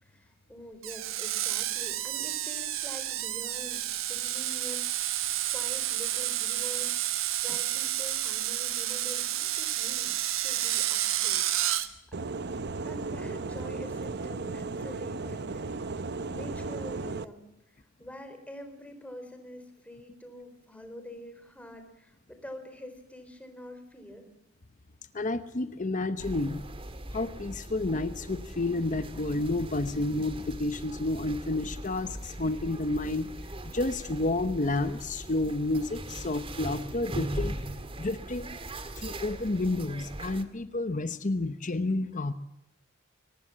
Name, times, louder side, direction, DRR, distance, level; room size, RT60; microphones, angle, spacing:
voice 1, 0.0-4.8 5.5-11.9 12.8-16.0 16.3-24.3, left 1 dB, 5° left, 7 dB, 3.9 m, -46 dB
Screech, 0.8-11.9, right 13 dB, 75° right, 1.5 m, -30 dB
sound 1, 12.1-17.3, right 3 dB, 55° right, 0.8 m, -35 dB
voice 2, 25.1-26.6 27.1-33.3 33.7-37.6 38.0-38.5 39.0-42.3, left 2 dB, 40° left, 12 dB, 0.9 m, -30 dB
sound 2, 26.2-40.4, right 1 dB, 25° right, 1.7 m, -40 dB
23.5 x 19.5 x 7.4 m, 0.89 s
head